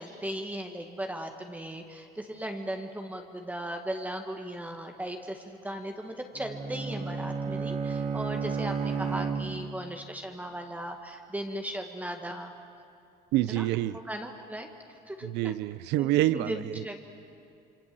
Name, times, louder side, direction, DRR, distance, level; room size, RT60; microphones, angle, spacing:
voice 1, 0.0-12.5 13.5-13.6 14.1-14.7 15.1-15.3 16.0-17.0, right 1 dB, 10° right, 4 dB, 1.8 m, -37 dB
Bowed string instrument, 6.4-10.0, right 5 dB, 40° right, 2.1 m, -32 dB
voice 2, 13.3-14.0 15.2-16.8, right 15 dB, 90° right, 17 dB, 0.7 m, -27 dB
27.0 x 25.0 x 7.8 m, 2.6 s
cardioid pair, 110°, 17 cm